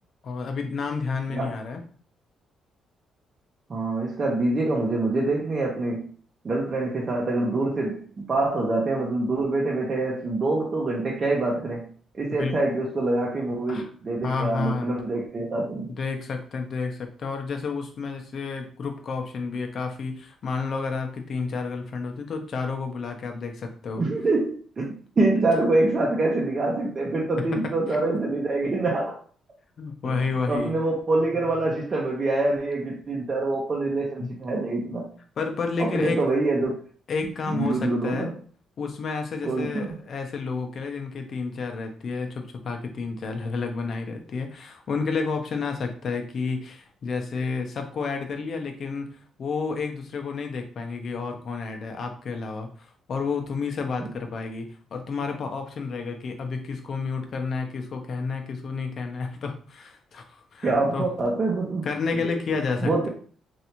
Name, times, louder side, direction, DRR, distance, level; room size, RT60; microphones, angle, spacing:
voice 1, 0.2-1.8 12.4-12.6 13.7-13.9 14.2-15.0 15.9-24.0 29.8-30.7 34.2-34.3 35.4-36.2 37.1-38.3 38.8-61.1 61.8-63.1, left 4 dB, 55° left, 0.6 m, -30 dB
voice 2, 3.7-6.1 6.4-11.9 12.1-15.9 23.9-29.2 30.0-30.2 30.5-35.1 35.8-36.8 37.5-38.3 39.4-40.0 60.6-61.9 62.1-62.3 62.8-63.1, right 2 dB, 40° right, 0.8 m, -25 dB
3.2 x 2.6 x 2.9 m
cardioid pair, 90°, 0 cm